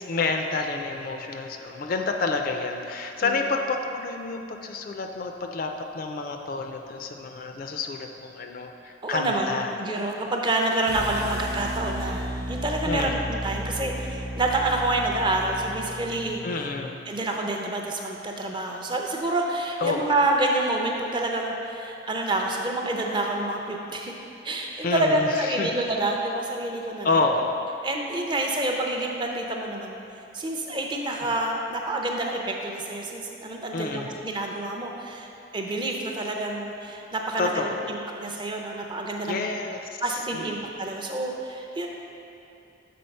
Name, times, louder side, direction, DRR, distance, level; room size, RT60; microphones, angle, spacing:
voice 1, 0.0-9.7 12.9-13.2 16.4-17.0 19.8-20.1 24.8-25.8 27.0-27.6 31.2-31.3 33.7-34.2 37.4-38.0 39.2-40.6, left 3 dB, 45° left, 4 dB, 0.3 m, -29 dB
voice 2, 9.0-16.4 17.1-24.1 24.4-27.1 27.8-30.0 30.3-39.4 40.0-41.9, right 2 dB, 25° right, 1 dB, 0.5 m, -28 dB
sound 1, 10.9-17.0, equal, 55° right, 0.7 m, -34 dB
6.8 x 3.8 x 5.3 m, 2.8 s
head